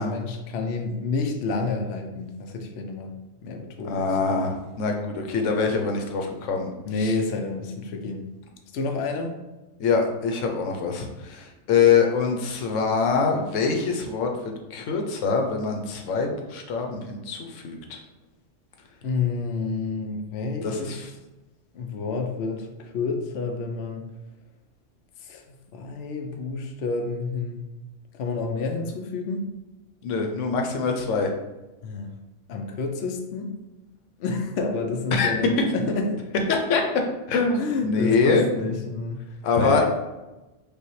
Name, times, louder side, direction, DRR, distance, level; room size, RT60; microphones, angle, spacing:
voice 1, 0.0-4.4 6.8-8.3 8.7-9.4 19.0-21.0 21.7-24.0 25.2-25.4 25.7-27.7 28.1-29.5 31.8-32.2 32.5-33.5 34.2-36.2 37.6-39.2 39.6-39.9, left 4 dB, 65° left, 3 dB, 0.8 m, -29 dB
voice 2, 3.9-6.7 7.0-7.1 9.8-14.3 14.7-18.0 20.6-21.1 30.0-31.3 35.1-35.3 36.7-36.8 37.3-38.5 39.4-39.9, left 5 dB, 90° left, 3 dB, 1.0 m, -24 dB
5.2 x 2.2 x 3.1 m, 1.1 s
omnidirectional pair, 1.3 m